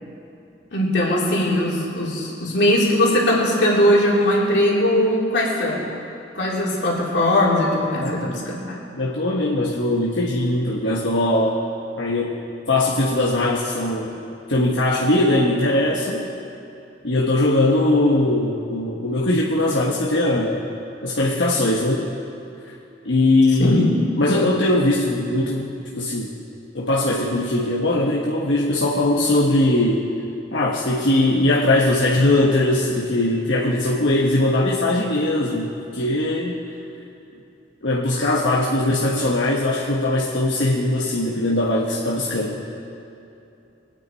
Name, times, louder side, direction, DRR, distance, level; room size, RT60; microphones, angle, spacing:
voice 1, 0.7-5.9 6.3-8.8 23.6-23.9, left 1 dB, 70° left, -4 dB, 3.1 m, -20 dB
voice 2, 8.0-8.3 8.9-11.6 12.0-12.4 12.7-14.2 14.5-16.3 17.0-20.7 21.0-22.1 22.7-22.8 23.0-23.9 24.2-26.3 26.7-30.1 30.5-36.5 37.8-42.6, left 1 dB, 85° left, -5 dB, 1.3 m, -20 dB
23.5 x 9.2 x 4.5 m, 2.7 s
head